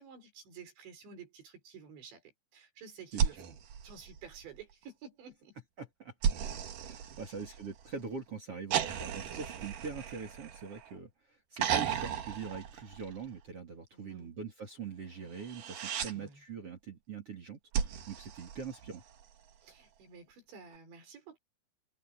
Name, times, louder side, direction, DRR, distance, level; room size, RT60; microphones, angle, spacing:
voice 1, 0.0-3.6 3.8-5.6 7.1-7.6 9.3-9.6 10.1-10.2 13.9-14.4 16.1-16.4 19.6-21.4, right 6 dB, 85° right, 7.6 m, -52 dB
sound 1, 3.1-4.7 6.2-7.9 8.7-11.0 11.6-13.4 15.4-16.1 17.7-19.2 20.7-20.8, right 8 dB, 55° right, 3.1 m, -35 dB
voice 2, 5.8-6.1 6.8-19.0, right 5 dB, 40° right, 3.0 m, -43 dB
omnidirectional pair, 5.0 m